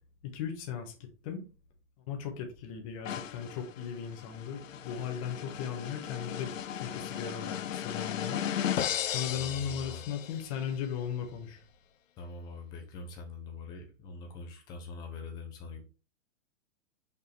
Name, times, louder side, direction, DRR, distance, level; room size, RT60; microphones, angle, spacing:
voice 1, 0.2-1.4 2.1-8.4 9.1-11.6, left 8 dB, 25° left, 4 dB, 1.4 m, -37 dB
sound 1, 3.0-10.6, left 10 dB, 85° left, 0.9 m, -36 dB
voice 2, 9.3-10.0 12.2-15.8, left 4 dB, 10° left, 3 dB, 0.7 m, -43 dB
6.5 x 5.3 x 3.4 m, 0.33 s
hypercardioid pair, 170°, 38 cm